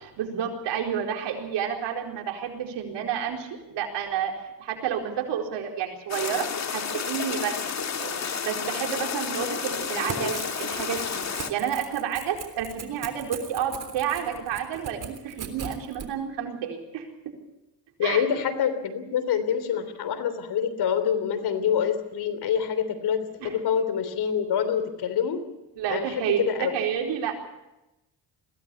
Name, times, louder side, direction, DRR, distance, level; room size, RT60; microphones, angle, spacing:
voice 1, 0.2-7.6 8.0-11.2 11.5-17.1 18.0-18.2 23.4-23.5 25.8-26.4 26.7-27.4, right 8 dB, 80° right, 2 dB, 4.5 m, -30 dB
sound 1, 6.1-11.5, left 6 dB, 40° left, 1.9 m, -31 dB
Crackle / Tearing, 9.7-16.1, right 7 dB, 45° right, 3.5 m, -39 dB
voice 2, 9.9-10.3 18.0-25.4 25.9-26.7, left 8 dB, 65° left, 11 dB, 3.4 m, -26 dB
21.5 x 17.0 x 8.5 m, 0.95 s
cardioid pair, 100°, 42 cm